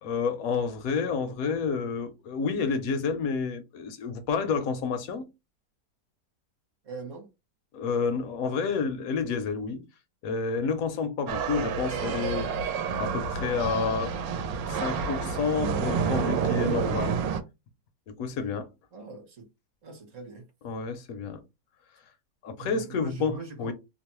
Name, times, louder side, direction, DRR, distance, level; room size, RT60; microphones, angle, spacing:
voice 1, 0.0-5.3 7.7-9.8 10.2-12.5 13.0-14.2 14.7-17.2 18.1-18.7 20.6-21.4 22.4-23.7, left 5 dB, 70° left, 0.9 m, -29 dB
voice 2, 6.8-7.3 18.9-19.5 19.8-20.5 22.6-23.7, right 4 dB, 50° right, 1.3 m, -41 dB
sound 1, 11.3-17.4, right 6 dB, 90° right, 1.2 m, -29 dB
3.0 x 2.0 x 2.9 m
omnidirectional pair, 1.9 m